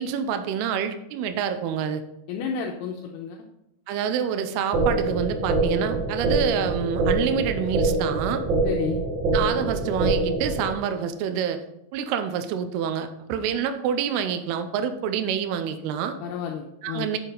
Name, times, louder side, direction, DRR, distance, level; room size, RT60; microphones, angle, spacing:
voice 1, 0.0-2.0 3.9-8.5 9.3-11.6 11.9-16.2 16.8-17.2, right 8 dB, 80° right, 9 dB, 2.5 m, -27 dB
voice 2, 2.3-3.5 8.6-9.0 16.2-17.1, left 7 dB, 80° left, 1 dB, 2.4 m, -31 dB
sound 1, 4.7-10.7, right 2 dB, 60° right, 2.0 m, -24 dB
8.9 x 6.6 x 3.9 m, 0.85 s
omnidirectional pair, 5.1 m